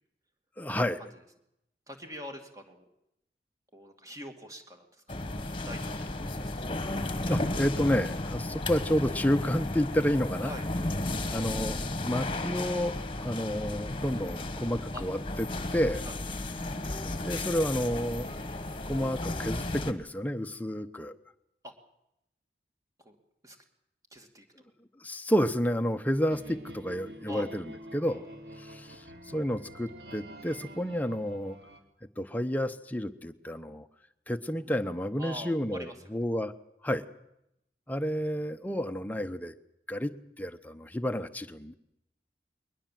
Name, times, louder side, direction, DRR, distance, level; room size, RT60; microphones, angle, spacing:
voice 1, 0.6-1.0 7.3-10.5 11.3-12.9 13.2-15.5 15.7-16.0 17.2-18.3 18.9-21.1 25.0-27.6 27.9-28.2 28.6-31.6 32.2-33.9 34.3-36.5 36.8-37.0 37.9-39.5 39.9-41.7, equal, 10° left, 8 dB, 0.9 m, -30 dB
voice 2, 1.9-2.8 3.7-5.0 5.6-6.2 6.5-6.6 10.4-10.7 14.9-15.0 16.0-16.2 21.6-21.7 23.0-23.2 23.4-23.6 24.1-24.7 27.3-27.5 35.2-36.1, equal, 20° right, 5 dB, 2.5 m, -44 dB
sound 1, 5.1-19.9, left 2 dB, 30° left, 1.5 m, -34 dB
sound 2, 26.3-31.8, right 1 dB, 75° right, 2.9 m, -47 dB
21.5 x 19.5 x 7.6 m, 0.81 s
head